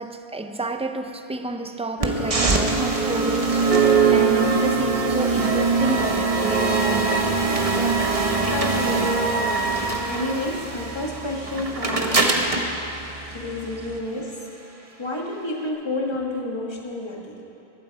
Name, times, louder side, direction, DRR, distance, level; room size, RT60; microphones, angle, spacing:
voice 1, 0.0-7.2 7.7-8.4, right 2 dB, 10° right, 7 dB, 0.3 m, -30 dB
sound 1, 2.0-14.0, right 4 dB, 35° right, 1.1 m, -22 dB
voice 2, 8.5-12.4 13.3-14.4 15.0-17.4, left 2 dB, 25° left, -2 dB, 1.7 m, -30 dB
20.5 x 11.5 x 4.8 m, 2.9 s
omnidirectional pair, 1.1 m